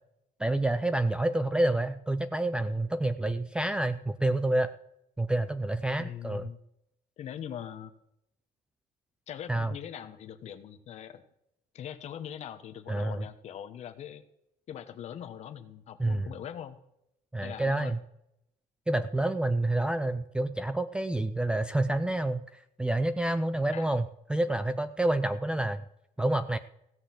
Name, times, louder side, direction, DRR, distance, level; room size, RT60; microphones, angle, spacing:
voice 1, 0.4-4.7 5.2-6.5 9.5-9.7 12.9-13.2 16.0-16.3 17.3-18.0 18.9-25.8 26.2-26.6, right 1 dB, 5° right, 8 dB, 0.4 m, -28 dB
voice 2, 6.0-6.6 7.2-7.9 9.3-11.2 11.7-14.2 14.7-16.8 17.4-18.0 23.7-23.9, left 9 dB, 45° left, 9 dB, 1.1 m, -41 dB
16.0 x 6.3 x 7.6 m, 0.80 s
cardioid pair, 165°, 16 cm